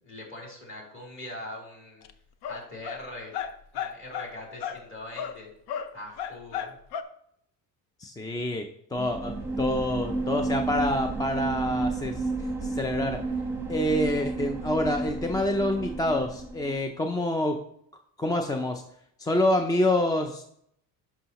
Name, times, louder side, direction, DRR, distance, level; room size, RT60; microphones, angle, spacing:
voice 1, 0.0-2.0 2.5-3.4 3.7-5.5 5.9-6.8, left 1 dB, 30° left, -2 dB, 3.1 m, -42 dB
sound 1, 2.0-2.1 2.4-3.0 3.3-4.3 4.6-4.8 5.2-5.4 5.7-7.0, left 8 dB, 70° left, 0.7 m, -34 dB
voice 2, 8.0-12.2 12.6-13.2 13.7-17.6 18.2-18.8 19.2-20.4, left 1 dB, 10° left, 5 dB, 0.3 m, -27 dB
sound 2, 8.9-16.8, right 3 dB, 5° right, 0.9 m, -31 dB
11.0 x 5.6 x 2.9 m, 0.70 s
cardioid pair, 120°, 39 cm